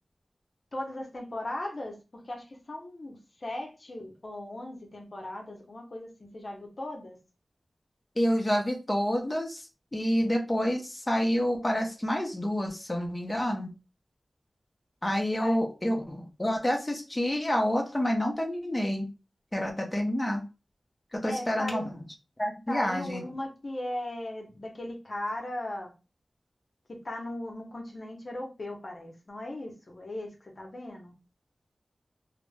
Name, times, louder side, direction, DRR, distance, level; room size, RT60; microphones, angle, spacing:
voice 1, 0.7-7.2 15.4-15.6 21.3-21.8 22.7-25.9 26.9-31.1, left 1 dB, 55° left, 0.8 m, -38 dB
voice 2, 8.2-13.7 15.0-19.1 19.5-20.4 21.1-21.9 22.4-23.2, equal, 20° left, 0.7 m, -28 dB
2.8 x 2.0 x 3.3 m
wide cardioid pair, 50°, 0 cm